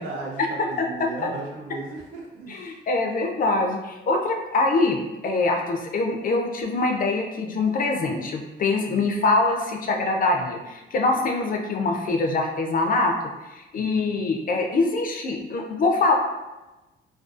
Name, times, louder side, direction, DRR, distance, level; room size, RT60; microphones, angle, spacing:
voice 1, 0.0-2.8 8.9-9.1 13.7-14.2, right 3 dB, 85° right, -1 dB, 0.7 m, -36 dB
voice 2, 2.5-13.1 13.5-16.1, left 3 dB, 45° left, 3 dB, 0.4 m, -24 dB
2.4 x 2.3 x 2.4 m, 1.1 s
cardioid pair, 90°, 20 cm